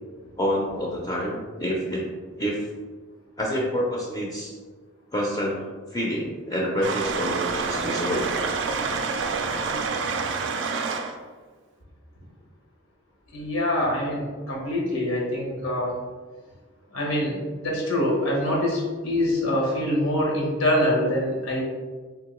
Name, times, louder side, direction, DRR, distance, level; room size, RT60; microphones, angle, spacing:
voice 1, 0.4-2.1 2.4-2.6 3.4-4.5 5.1-5.6 5.9-8.3, equal, 15° left, -3 dB, 0.4 m, -27 dB
sound 1, 6.8-11.1, right 4 dB, 60° right, 0.3 m, -27 dB
voice 2, 13.3-15.9 16.9-17.3 17.6-21.6, left 1 dB, 90° left, -3 dB, 1.0 m, -24 dB
3.6 x 2.6 x 3.0 m, 1.4 s
head